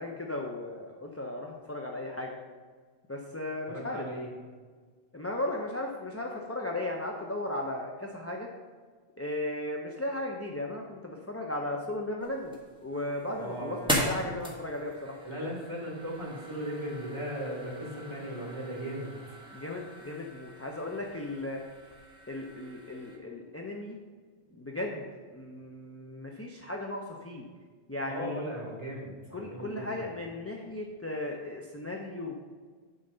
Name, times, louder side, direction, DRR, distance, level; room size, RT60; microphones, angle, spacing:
voice 1, 0.0-2.4 3.1-4.1 5.1-8.5 9.2-15.1 19.5-21.6 22.3-24.0 24.5-27.5 27.9-28.4 29.3-32.4, left 1 dB, 15° left, 0 dB, 0.6 m, -36 dB
voice 2, 3.7-4.3 13.4-13.9 15.2-19.1 28.1-30.1, equal, 25° right, -3 dB, 2.4 m, -37 dB
sound 1, 12.2-23.2, equal, 5° right, 1.4 m, -39 dB
9.4 x 4.0 x 6.5 m, 1.5 s
omnidirectional pair, 1.1 m